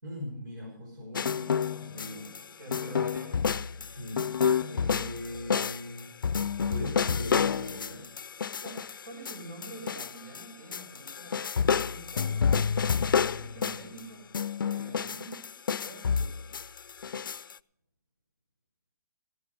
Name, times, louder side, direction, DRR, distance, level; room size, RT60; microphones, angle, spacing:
voice 1, 0.0-2.3 2.7-3.0 3.8-4.2 4.6-6.1 6.7-8.1, left 1 dB, 80° right, -1 dB, 5.6 m, -40 dB
sound 1, 1.1-2.4 2.7-10.4 10.7-14.0 14.3-17.5, left 6 dB, 90° left, 0.4 m, -29 dB
voice 2, 2.2-3.9 8.6-12.9 13.2-14.3 14.6-15.4 15.8-16.5, right 2 dB, 65° right, 2 dB, 7.2 m, -47 dB
15.5 x 10.5 x 5.4 m, 0.67 s
hypercardioid pair, 160°, 11 cm